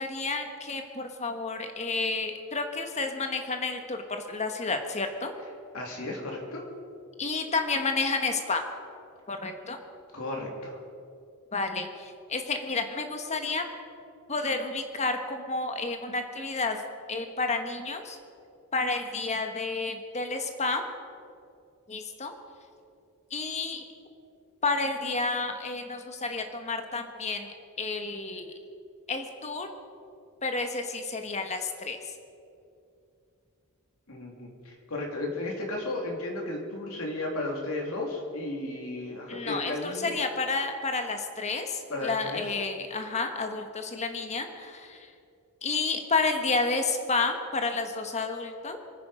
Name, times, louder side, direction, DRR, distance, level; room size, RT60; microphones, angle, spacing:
voice 1, 0.0-5.3 7.2-8.6 9.3-9.8 11.5-13.7 14.3-16.8 17.1-18.2 18.7-20.8 21.9-22.3 23.3-23.8 24.6-28.5 29.1-29.7 30.4-32.1 39.3-45.1 45.6-48.8, left 3 dB, 30° left, 6 dB, 1.4 m, -30 dB
voice 2, 5.7-6.6 10.1-10.8 34.1-40.1 41.9-42.6, left 2 dB, 70° left, 0 dB, 3.1 m, -34 dB
25.5 x 9.5 x 5.1 m, 2.5 s
head